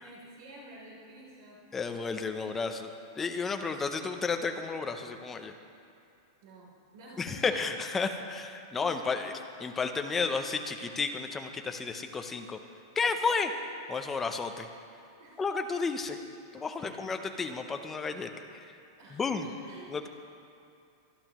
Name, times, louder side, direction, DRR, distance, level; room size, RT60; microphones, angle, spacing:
voice 1, 0.0-1.6 6.4-7.6 8.7-9.4 10.1-10.3 13.0-13.2 15.2-15.4 16.8-17.0 19.0-20.1, right 2 dB, 60° right, -4 dB, 3.1 m, -51 dB
voice 2, 1.7-2.9 3.2-5.5 7.2-9.3 9.6-12.6 13.0-13.5 13.9-14.7 15.4-16.2 16.5-18.7 19.1-19.5 19.9-20.1, left 4 dB, 10° left, 6 dB, 0.5 m, -32 dB
24.5 x 11.0 x 3.0 m, 2.5 s
supercardioid pair, 180°, 2 cm